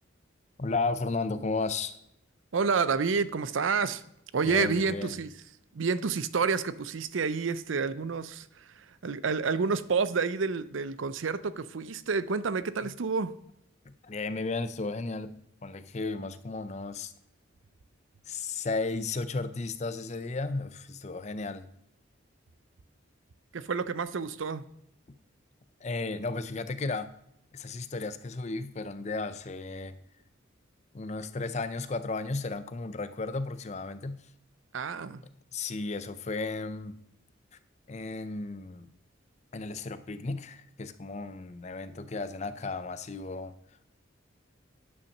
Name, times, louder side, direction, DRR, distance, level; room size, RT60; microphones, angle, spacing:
voice 1, 0.6-2.0 4.4-5.2 14.0-17.1 18.3-21.7 25.8-27.1 27.5-30.0 30.9-34.2 35.5-37.0 37.9-38.9 39.5-43.5, left 3 dB, 35° left, 13 dB, 0.5 m, -34 dB
voice 2, 2.5-4.0 4.3-5.3 5.7-13.4 23.5-24.7 34.7-35.2, right 5 dB, 75° right, 15 dB, 0.6 m, -29 dB
9.6 x 5.7 x 6.5 m, 0.77 s
head